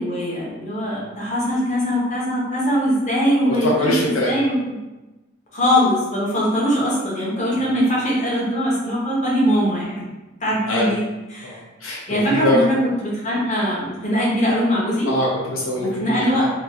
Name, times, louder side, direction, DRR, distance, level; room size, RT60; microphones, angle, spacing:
voice 1, 0.0-4.6 5.5-10.1 10.4-11.6 12.1-12.7 13.0-15.1 15.8-16.5, equal, 35° left, -6 dB, 0.8 m, -21 dB
voice 2, 3.4-4.3 7.6-7.7 10.5-10.9 11.4-12.6 15.0-16.5, left 1 dB, 80° left, -4 dB, 0.6 m, -23 dB
3.1 x 2.2 x 2.5 m, 1.1 s
head